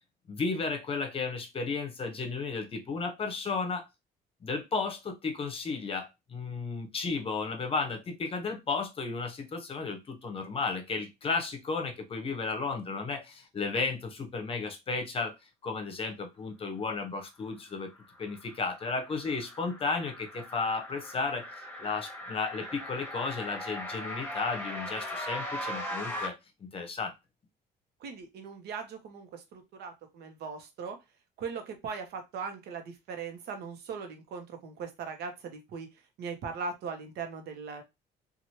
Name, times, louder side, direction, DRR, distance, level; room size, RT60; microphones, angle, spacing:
voice 1, 0.3-3.9 4.4-15.3 15.6-17.9 18.2-21.4 21.8-26.4 26.6-27.1, left 4 dB, 35° left, 0.8 m, -33 dB
sound 1, 17.9-26.3, left 1 dB, 10° left, 1.1 m, -39 dB
voice 2, 28.0-31.0 31.4-35.9 36.2-37.8, right 5 dB, 75° right, 0.9 m, -39 dB
3.0 x 2.4 x 2.8 m
cardioid pair, 110°, 17 cm